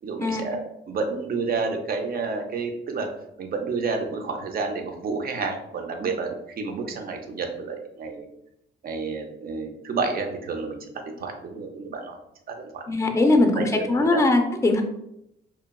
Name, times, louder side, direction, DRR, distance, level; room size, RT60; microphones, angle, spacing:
voice 1, 0.0-3.1 3.4-8.3 8.8-10.8 11.0-12.2 12.5-12.8 13.3-14.2, right 4 dB, 50° right, 4 dB, 0.5 m, -30 dB
voice 2, 12.9-14.8, left 2 dB, 15° left, 4 dB, 0.4 m, -20 dB
2.9 x 2.2 x 2.2 m, 0.80 s
cardioid pair, 75°, 20 cm